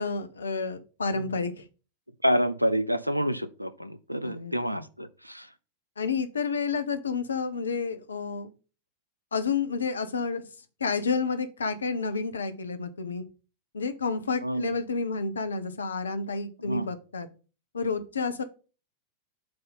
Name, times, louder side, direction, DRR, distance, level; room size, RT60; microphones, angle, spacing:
voice 1, 0.0-1.7 4.2-4.8 6.0-8.5 9.3-10.4 10.8-13.2 13.7-17.3 17.7-18.4, left 4 dB, 70° left, 0.7 m, -30 dB
voice 2, 2.2-5.5 14.4-14.7 16.6-16.9, equal, 90° right, 0.5 m, -28 dB
7.7 x 2.8 x 5.4 m
figure-of-eight pair, 90°, 0 cm